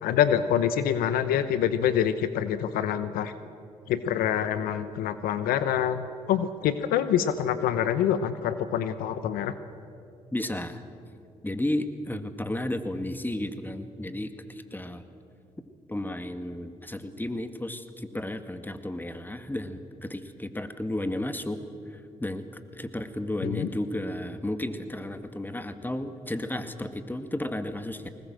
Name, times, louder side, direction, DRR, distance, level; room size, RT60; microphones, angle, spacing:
voice 1, 0.0-3.3 3.9-9.5 23.4-23.7, left 9 dB, 80° left, 12 dB, 0.9 m, -26 dB
voice 2, 10.3-10.8 11.4-15.0 15.9-21.6 22.2-22.4 22.7-28.1, left 1 dB, 10° left, 8 dB, 2.0 m, -33 dB
21.0 x 19.5 x 7.5 m, 2.5 s
hypercardioid pair, 45°, 15 cm